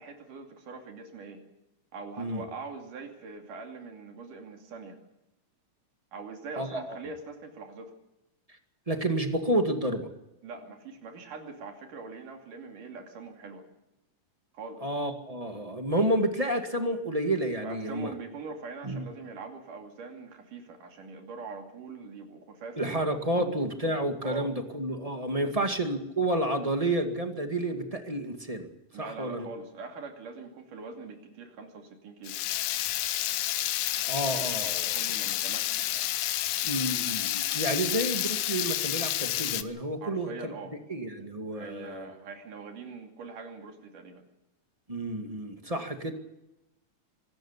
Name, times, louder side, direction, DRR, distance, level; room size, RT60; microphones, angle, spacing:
voice 1, 0.0-1.4 1.9-5.0 6.1-7.9 10.4-13.6 14.5-14.8 17.6-23.1 23.3-23.5 24.2-24.5 25.4-25.7 28.9-32.4 34.6-36.1 40.0-40.7 41.5-44.2, right 4 dB, 75° right, 3 dB, 4.2 m, -43 dB
voice 2, 6.6-7.0 8.9-10.1 14.8-18.1 18.8-19.0 22.8-28.7 28.9-29.5 34.1-35.0 36.6-40.5 40.9-42.1 44.9-46.1, right 1 dB, 15° right, 5 dB, 1.4 m, -30 dB
Water tap faucet / Liquid, 32.3-39.6, left 13 dB, 80° left, 2.5 m, -30 dB
25.0 x 13.0 x 8.2 m, 0.92 s
omnidirectional pair, 3.8 m